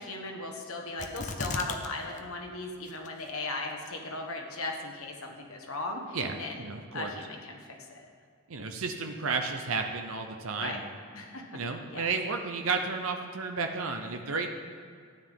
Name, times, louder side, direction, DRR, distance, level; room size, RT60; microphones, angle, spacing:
voice 1, 0.0-6.7 6.9-8.1 10.6-10.8 11.1-11.4 11.9-12.1, left 2 dB, 75° left, 2 dB, 1.4 m, -37 dB
sound 1, 1.0-1.9 2.2-2.3 2.9-3.3 3.9-4.0, left 3 dB, 35° left, 0.6 m, -35 dB
voice 2, 6.1-7.1 8.5-10.9 11.5-14.5, right 4 dB, 70° right, 4 dB, 0.7 m, -32 dB
13.5 x 9.2 x 3.7 m, 2.1 s
head